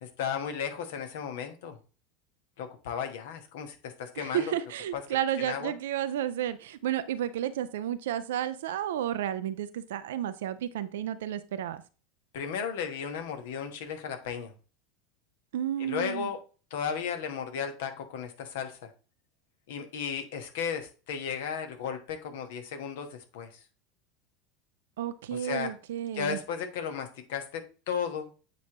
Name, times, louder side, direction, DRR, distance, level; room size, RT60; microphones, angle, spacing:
voice 1, 0.0-1.8 2.6-4.5 4.9-5.0 5.4-5.7 12.3-14.5 15.8-16.4 16.7-18.9 19.7-23.6 25.3-25.7 26.1-28.3, left 7 dB, 60° left, 1.2 m, -35 dB
voice 2, 4.2-11.8 15.5-16.3 25.0-26.4, right 11 dB, 60° right, 0.4 m, -32 dB
8.2 x 5.0 x 3.0 m
figure-of-eight pair, 80°, 0 cm